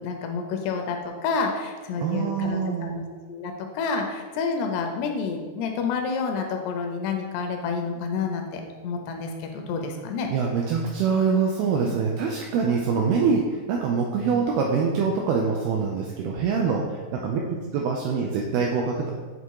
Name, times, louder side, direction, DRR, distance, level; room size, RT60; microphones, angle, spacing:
voice 1, 0.0-10.3 11.8-11.9, left 5 dB, 80° left, 4 dB, 2.6 m, -29 dB
voice 2, 2.0-2.9 10.3-19.1, right 5 dB, 85° right, 0 dB, 2.2 m, -24 dB
8.1 x 3.6 x 4.7 m, 1.4 s
omnidirectional pair, 5.0 m